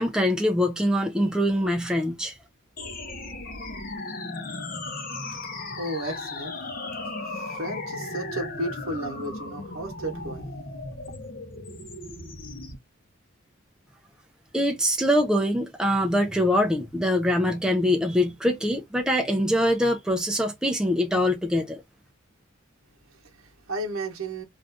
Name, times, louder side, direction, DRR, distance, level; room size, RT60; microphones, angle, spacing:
voice 1, 0.0-2.3 14.5-21.8, equal, 5° right, 0.4 m, -23 dB
sound 1, 2.8-12.8, left 2 dB, 40° left, 0.7 m, -36 dB
voice 2, 5.8-6.6 7.0-10.5 23.1-24.4, right 1 dB, 75° right, 0.9 m, -34 dB
2.6 x 2.3 x 3.4 m
head